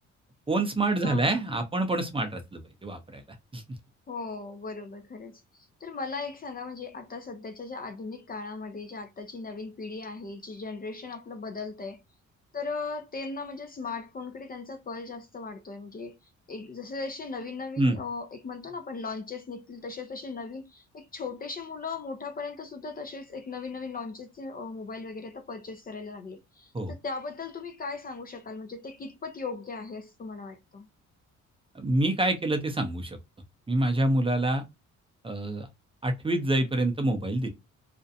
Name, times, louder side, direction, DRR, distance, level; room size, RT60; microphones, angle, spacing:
voice 1, 0.5-3.2 3.5-3.6 17.8-18.0 26.7-26.9 31.7-33.2 33.7-34.6 35.2-35.7 36.0-37.5, right 1 dB, 20° right, 0.6 m, -26 dB
voice 2, 1.0-1.5 4.1-12.0 12.5-16.2 16.5-30.9, left 4 dB, 30° left, 0.5 m, -38 dB
2.5 x 2.1 x 2.6 m
cardioid pair, 90°, 30 cm